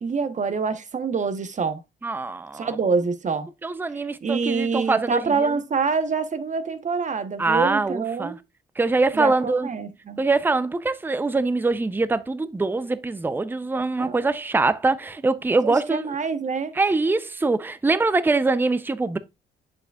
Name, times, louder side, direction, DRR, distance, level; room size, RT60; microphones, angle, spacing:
voice 1, 0.0-1.8 2.5-3.5 3.9-8.4 9.1-10.2 14.0-14.2 15.6-16.7, right 5 dB, 40° right, 1.0 m, -26 dB
voice 2, 2.0-2.8 3.6-5.5 7.4-8.4 8.8-9.7 10.2-16.1 16.8-19.2, right 3 dB, 10° right, 0.5 m, -23 dB
7.8 x 6.7 x 2.3 m
cardioid pair, 90°, 20 cm